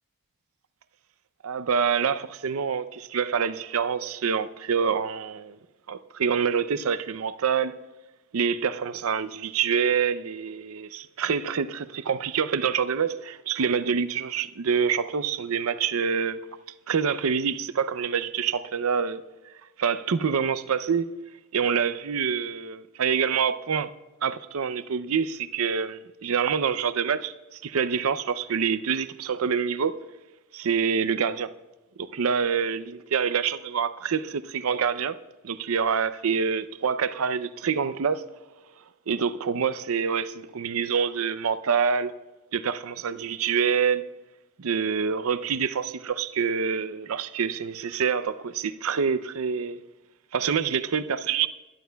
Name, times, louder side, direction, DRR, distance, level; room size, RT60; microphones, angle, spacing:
voice 1, 1.4-5.6 5.9-7.7 8.3-16.4 16.9-19.2 19.8-21.1 21.5-23.9 24.2-30.0 30.5-31.5 32.0-35.2 35.4-38.2 39.1-42.1 42.5-44.0 44.6-49.8 50.3-51.5, right 6 dB, 75° right, 0.5 m, -26 dB
22.0 x 11.5 x 2.3 m
head